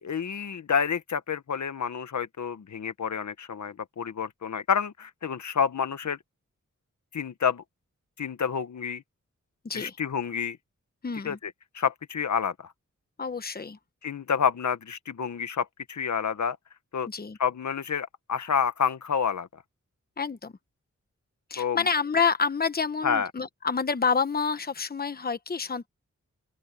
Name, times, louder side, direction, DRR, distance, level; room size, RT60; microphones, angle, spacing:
voice 1, 0.0-6.2 7.1-7.6 8.2-9.0 9.7-10.6 11.2-12.7 14.0-16.6 16.9-17.1 17.4-19.5 21.6-21.8 23.0-23.3, left 7 dB, 70° left, 1.2 m, -29 dB
voice 2, 9.6-10.0 11.0-11.4 13.2-13.8 17.1-17.4 20.2-20.6 21.5-25.9, left 5 dB, 30° left, 1.0 m, -28 dB
open air
wide cardioid pair, 110°, 30 cm